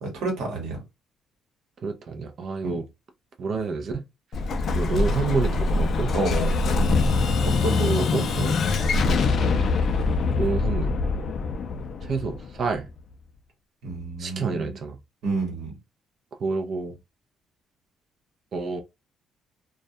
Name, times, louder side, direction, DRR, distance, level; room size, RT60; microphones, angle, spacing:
voice 1, 0.0-0.8 2.6-2.8 6.1-6.5 7.6-8.7 13.8-14.8 15.2-15.8, right 2 dB, 85° right, 1.0 m, -29 dB
voice 2, 1.8-2.9 3.4-4.0 4.7-6.1 7.8-8.3 10.4-10.9 12.0-12.9 14.2-15.0 16.4-16.9 18.5-18.8, right 4 dB, 45° right, 0.4 m, -28 dB
Explosion, 4.3-13.0, left 3 dB, 45° left, 0.3 m, -24 dB
2.3 x 2.1 x 2.6 m
cardioid pair, 150°, 0 cm